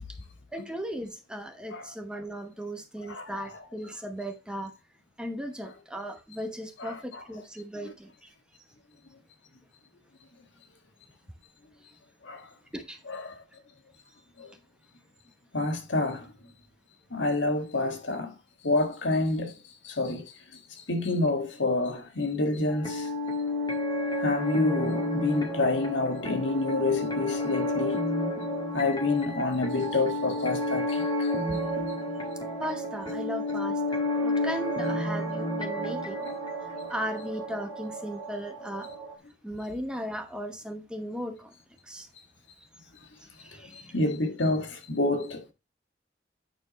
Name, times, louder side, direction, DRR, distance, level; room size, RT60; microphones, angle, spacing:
voice 1, 0.5-4.7 5.2-8.3 12.7-13.0 32.6-36.3 36.9-38.9 39.4-41.5 41.9-42.1 42.6-42.7 43.4-43.9, equal, 5° right, 0.9 m, -37 dB
voice 2, 3.0-3.4 6.8-7.2 7.8-7.9 12.2-12.5 13.1-13.4 14.4-14.5 15.5-16.3 17.1-18.3 18.6-19.5 19.8-20.2 20.5-20.6 20.9-23.1 24.2-28.0 28.7-31.6 43.7-45.5, left 2 dB, 80° left, 1.5 m, -28 dB
sound 1, 22.7-39.1, left 1 dB, 25° left, 1.8 m, -31 dB
9.0 x 4.4 x 4.0 m
head